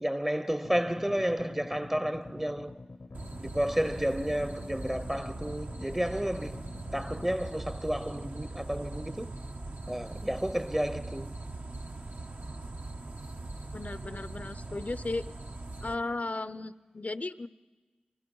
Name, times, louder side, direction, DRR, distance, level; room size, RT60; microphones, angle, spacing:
voice 1, 0.0-2.7 3.4-6.6 6.9-9.3 9.9-11.3, equal, 15° right, 0.8 m, -31 dB
sound 1, 0.6-7.4, left 2 dB, 85° left, 1.0 m, -47 dB
sound 2, 3.1-16.0, right 2 dB, 70° right, 1.1 m, -41 dB
voice 2, 13.7-15.3 15.8-17.5, left 2 dB, 55° left, 0.6 m, -35 dB
28.5 x 22.5 x 5.5 m
wide cardioid pair, 40°, 3 cm